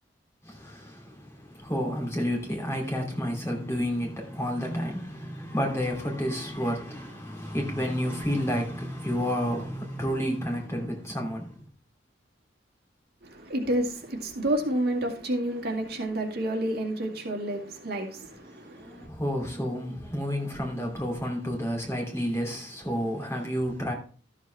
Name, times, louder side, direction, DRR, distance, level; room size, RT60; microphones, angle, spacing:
voice 1, 0.4-11.7 18.5-23.9, equal, 15° left, 2.8 m, -30 dB
voice 2, 13.2-19.1, right 1 dB, 55° right, 2.3 m, -30 dB
13.5 x 7.4 x 3.5 m
head